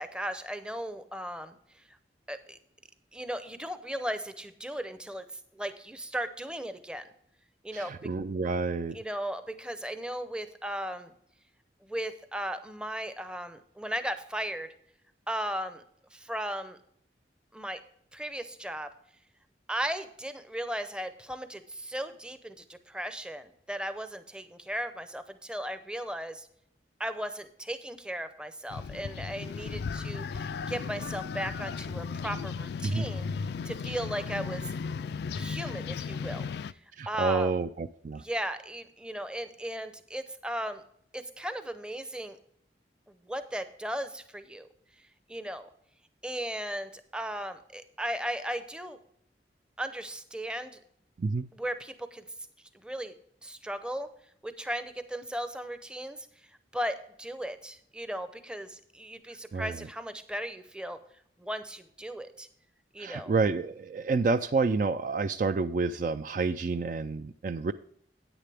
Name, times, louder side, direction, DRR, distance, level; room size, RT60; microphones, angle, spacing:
voice 1, 0.0-1.5 2.3-2.6 3.1-5.3 5.5-7.1 7.6-7.9 8.9-11.1 11.8-14.7 15.3-15.8 16.1-16.8 17.5-17.8 18.1-18.9 19.7-26.5 27.0-33.3 33.6-34.7 35.3-36.8 37.1-37.5 38.2-40.8 41.1-42.4 43.2-44.7 45.3-45.7 46.2-49.0 49.8-50.8 51.5-52.2 52.8-53.1 53.4-54.1 54.4-56.3 56.7-61.0 61.4-62.5 62.9-63.3, equal, 5° right, 10 dB, 0.6 m, -36 dB
voice 2, 7.7-9.0 32.8-33.1 37.0-38.2 51.2-51.5 59.5-59.8 63.0-67.7, right 4 dB, 45° right, 11 dB, 0.3 m, -29 dB
sound 1, 28.7-36.7, left 5 dB, 65° left, 0.3 m, -35 dB
10.0 x 9.1 x 3.4 m, 0.66 s
head